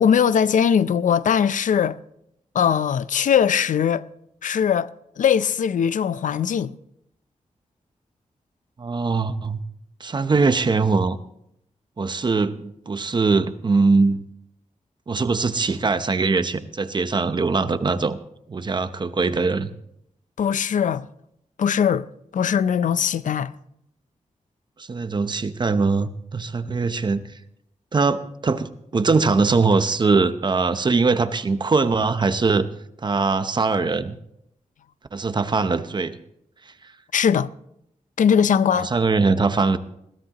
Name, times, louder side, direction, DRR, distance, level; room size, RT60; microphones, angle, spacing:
voice 1, 0.0-2.0 2.5-4.0 4.4-4.9 5.2-6.7 20.4-21.1 21.6-22.0 22.3-23.5 37.1-37.5 38.2-38.9, left 8 dB, 85° left, 0.5 m, -20 dB
voice 2, 8.8-9.6 10.0-11.2 12.0-14.2 15.1-18.2 18.5-19.7 24.8-27.2 27.9-32.7 33.0-34.2 35.1-36.2 38.7-39.8, right 4 dB, 35° right, 0.7 m, -21 dB
21.0 x 15.5 x 2.9 m
wide cardioid pair, 140°, 13 cm